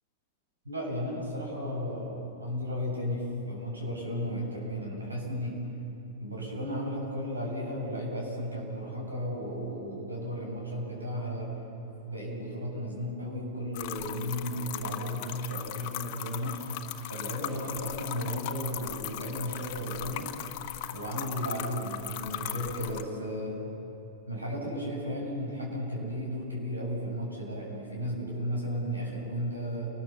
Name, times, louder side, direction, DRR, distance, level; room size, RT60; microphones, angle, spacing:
voice 1, 0.6-5.6 6.2-11.5 12.0-16.6 17.1-20.3 20.9-23.6 24.3-29.9, equal, 85° right, -2 dB, 7.8 m, -34 dB
sound 1, 13.7-23.0, left 12 dB, 50° left, 1.4 m, -38 dB
29.5 x 20.5 x 7.0 m, 2.9 s
figure-of-eight pair, 100°, 0 cm